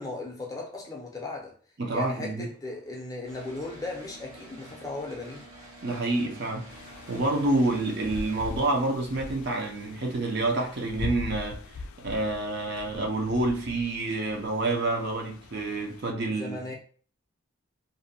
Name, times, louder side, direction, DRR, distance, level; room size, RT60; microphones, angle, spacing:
voice 1, 0.0-1.6 1.9-5.5 16.3-16.7, left 2 dB, 15° left, 0.5 m, -37 dB
voice 2, 1.8-2.5 5.8-6.6 7.1-11.6 12.0-16.6, right 2 dB, 50° right, 0.6 m, -28 dB
sound 1, 3.2-8.7, right 1 dB, 85° right, 0.8 m, -48 dB
sound 2, 6.7-16.1, left 2 dB, 80° left, 0.3 m, -41 dB
2.6 x 2.1 x 2.6 m
head